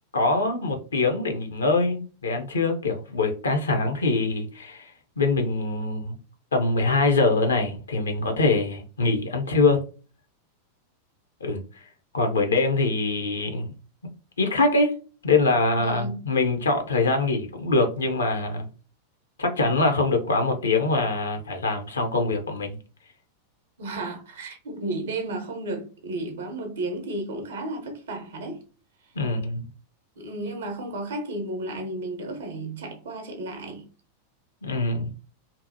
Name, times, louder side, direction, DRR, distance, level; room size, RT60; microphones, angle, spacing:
voice 1, 0.1-4.9 5.2-6.2 6.5-9.8 11.4-11.6 12.1-13.7 14.4-14.9 15.2-18.7 19.4-22.8 29.2-29.6 34.6-35.1, left 3 dB, 70° left, 0.6 m, -23 dB
voice 2, 15.7-16.2 23.8-28.6 30.2-33.8, right 2 dB, 65° right, 0.8 m, -33 dB
2.7 x 2.2 x 2.6 m
figure-of-eight pair, 90°, 0 cm